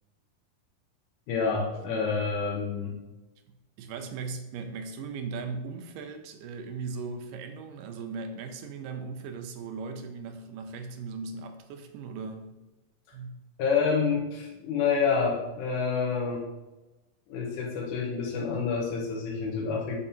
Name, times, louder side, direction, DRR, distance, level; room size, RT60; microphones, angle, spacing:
voice 1, 1.3-3.0 13.6-16.5 17.3-20.0, left 5 dB, 70° left, -2 dB, 2.3 m, -28 dB
voice 2, 3.5-12.5 13.1-13.4, right 4 dB, 80° right, 6 dB, 2.4 m, -38 dB
7.1 x 5.3 x 2.8 m, 1.0 s
omnidirectional pair, 3.9 m